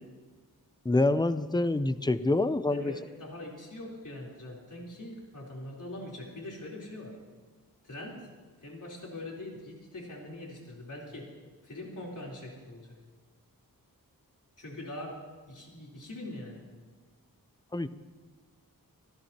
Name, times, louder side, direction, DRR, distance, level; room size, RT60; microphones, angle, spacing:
voice 1, 0.8-2.9 17.7-17.9, left 2 dB, 10° left, 12 dB, 0.6 m, -26 dB
voice 2, 2.7-7.2 7.8-8.3 8.6-11.3 11.6-13.0 14.6-15.2 15.5-16.6, left 1 dB, 60° left, -3 dB, 3.8 m, -42 dB
25.5 x 14.5 x 3.0 m, 1.4 s
wide cardioid pair, 95°, 35 cm